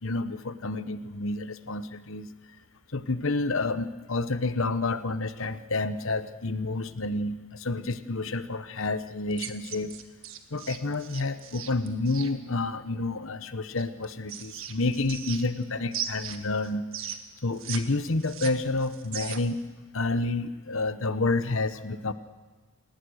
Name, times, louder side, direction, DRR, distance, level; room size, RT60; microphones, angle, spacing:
voice 1, 0.0-2.3 2.9-9.9 10.5-16.9 17.4-19.6 19.9-22.1, left 3 dB, 60° left, 12 dB, 1.1 m, -29 dB
sound 1, 9.3-12.3 13.8-15.6 15.9-17.8 18.1-19.6, right 9 dB, 65° right, 1.7 m, -38 dB
29.0 x 18.0 x 6.5 m, 1.4 s
head